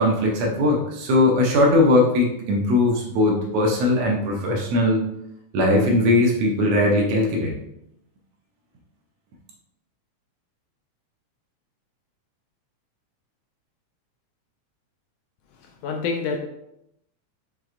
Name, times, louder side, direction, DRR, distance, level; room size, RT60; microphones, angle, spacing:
voice 1, 0.0-5.0 5.5-7.5, left 1 dB, 75° right, 0 dB, 1.7 m, -19 dB
voice 2, 15.6-16.4, left 4 dB, 80° left, 2 dB, 1.5 m, -27 dB
6.1 x 3.2 x 2.4 m, 0.80 s
omnidirectional pair, 3.4 m